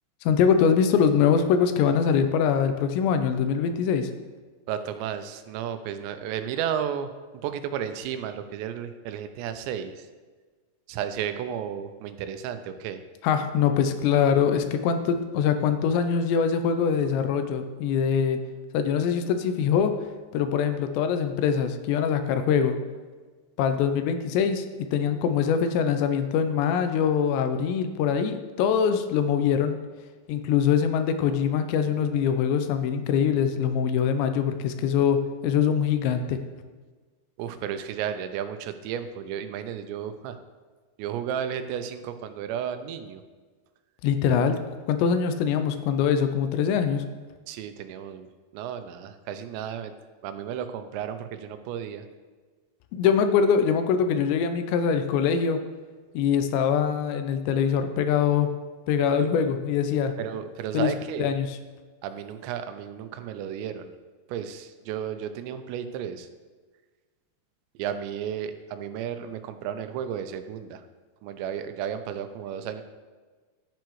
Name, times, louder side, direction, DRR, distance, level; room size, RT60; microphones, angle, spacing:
voice 1, 0.3-4.1 13.2-18.4 18.7-19.9 20.3-22.8 23.6-24.6 24.9-29.8 30.3-36.4 44.0-44.6 44.9-47.0 52.9-55.6 56.1-58.5 58.9-60.1 60.7-60.9 61.2-61.5, left 7 dB, 85° left, 8 dB, 2.9 m, -23 dB
voice 2, 4.7-7.1 7.4-10.1 10.9-13.0 37.4-40.4 41.0-43.2 47.5-48.3 48.5-49.9 50.2-52.1 60.2-61.3 62.0-63.9 64.3-66.3 67.8-70.8 71.2-72.8, right 9 dB, 85° right, 9 dB, 2.9 m, -33 dB
10.5 x 9.0 x 3.1 m, 1.4 s
omnidirectional pair, 5.0 m